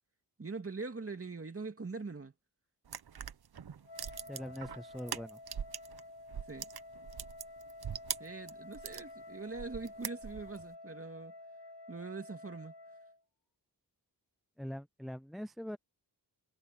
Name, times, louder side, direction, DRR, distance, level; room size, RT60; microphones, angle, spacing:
voice 1, 0.4-2.3 6.5-6.7 8.2-11.3 11.9-12.7, right 4 dB, 30° right, 2.4 m, -42 dB
sound 1, 2.9-6.0 6.3-9.1 9.5-10.6, right 8 dB, 60° right, 1.0 m, -42 dB
Wind instrument woodwind instrument, 3.8-13.2, left 2 dB, 75° left, 2.0 m, -51 dB
voice 2, 4.3-5.4 14.6-15.8, equal, ahead, 0.4 m, -42 dB
wide cardioid pair, 140°, 42 cm